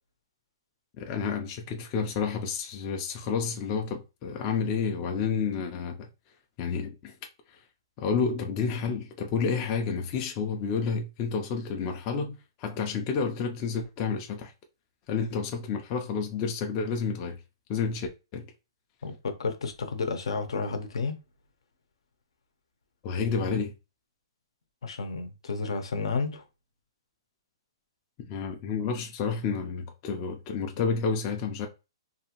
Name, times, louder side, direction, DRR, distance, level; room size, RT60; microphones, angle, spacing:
voice 1, 1.0-6.1 6.6-7.1 8.0-14.5 15.1-17.4 17.7-18.4 23.0-23.7 28.2-31.7, left 5 dB, 25° left, 0.4 m, -30 dB
voice 2, 19.0-21.2 24.8-26.4, left 4 dB, 75° left, 0.7 m, -31 dB
2.7 x 2.4 x 2.9 m
hypercardioid pair, 165°, 3 cm